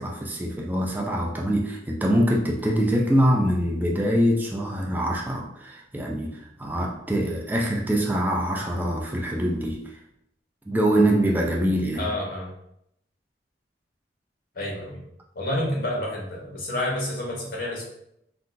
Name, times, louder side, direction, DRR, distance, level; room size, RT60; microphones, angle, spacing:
voice 1, 0.0-10.0 10.7-12.1, equal, 10° right, -1 dB, 0.3 m, -24 dB
voice 2, 12.0-12.5 14.5-15.0 15.3-17.8, left 1 dB, 55° left, -3 dB, 1.0 m, -29 dB
3.7 x 2.3 x 2.5 m, 0.76 s
head